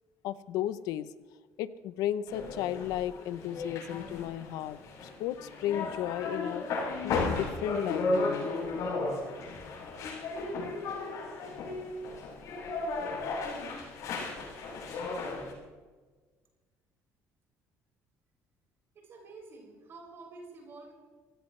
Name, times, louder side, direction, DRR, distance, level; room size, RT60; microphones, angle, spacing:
voice 1, 0.2-1.1 1.6-6.6 7.0-8.5 10.8-11.2, left 12 dB, 90° left, 14 dB, 0.7 m, -34 dB
sound 1, 2.3-15.5, left 3 dB, 65° left, 6.9 m, -35 dB
voice 2, 18.9-20.9, right 3 dB, 40° right, -1 dB, 7.0 m, -49 dB
26.0 x 17.0 x 3.3 m, 1.4 s
cardioid pair, 155°, 6 cm